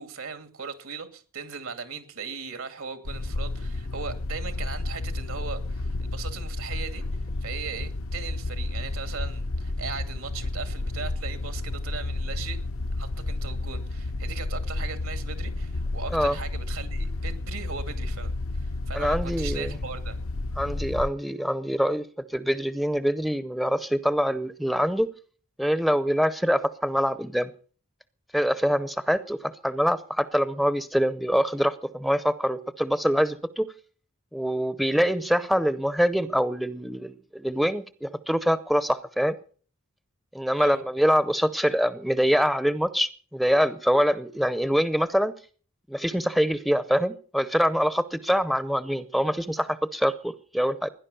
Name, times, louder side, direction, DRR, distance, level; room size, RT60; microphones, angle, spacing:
voice 1, 0.0-7.0 7.4-12.6 12.9-20.2 40.6-40.8, right 5 dB, 75° right, 9 dB, 2.5 m, -38 dB
sound 1, 3.0-21.1, left 2 dB, 75° left, 0.8 m, -31 dB
voice 2, 18.9-19.8 20.6-25.1 25.6-27.5 28.3-33.7 34.3-39.4 40.3-45.3 45.9-50.9, equal, ahead, 14 dB, 0.6 m, -24 dB
17.0 x 11.0 x 6.9 m, 0.43 s
head